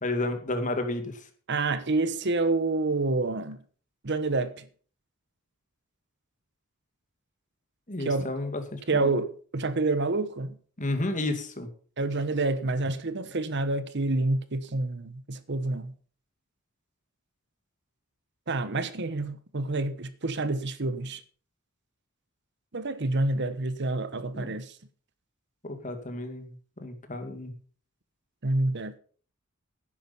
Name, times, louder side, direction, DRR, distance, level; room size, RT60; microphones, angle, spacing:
voice 1, 0.0-1.1 7.9-9.2 10.8-11.7 24.4-24.6 25.6-26.5 26.8-27.5, left 2 dB, 35° left, 2.2 m, -31 dB
voice 2, 1.5-3.6 4.0-4.7 8.0-8.3 8.9-10.6 12.0-15.9 18.5-21.2 22.7-24.8 28.4-28.9, right 2 dB, 55° right, 1.1 m, -28 dB
11.0 x 9.8 x 5.5 m
head